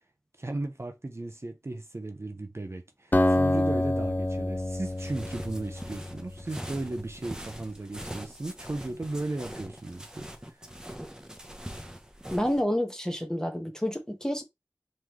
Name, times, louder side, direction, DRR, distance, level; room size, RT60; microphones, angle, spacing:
voice 1, 0.4-10.2 10.6-10.7, right 2 dB, 50° right, 0.6 m, -36 dB
Acoustic guitar, 3.1-6.7, left 1 dB, 30° left, 0.6 m, -27 dB
sound 1, 4.9-12.6, equal, 10° right, 0.8 m, -42 dB
voice 2, 12.3-14.4, equal, 10° left, 1.1 m, -29 dB
3.7 x 3.1 x 3.1 m
wide cardioid pair, 40°, 6 cm